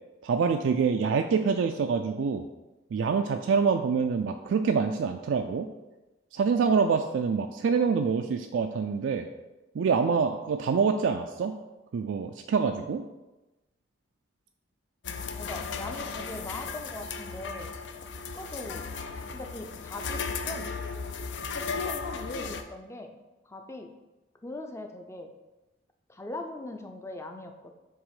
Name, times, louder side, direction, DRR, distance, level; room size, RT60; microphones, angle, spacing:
voice 1, 0.2-2.4 2.9-5.7 6.3-9.3 9.7-11.6 11.9-13.0, right 5 dB, 80° right, 5 dB, 0.3 m, -26 dB
sound 1, 15.0-22.6, left 5 dB, 65° left, 0.5 m, -35 dB
voice 2, 15.3-17.7 18.4-18.9 19.3-20.7 21.7-23.2 23.4-23.9 24.4-25.3 26.1-27.7, left 2 dB, 15° left, 4 dB, 0.4 m, -41 dB
7.3 x 3.0 x 4.8 m, 1.1 s
head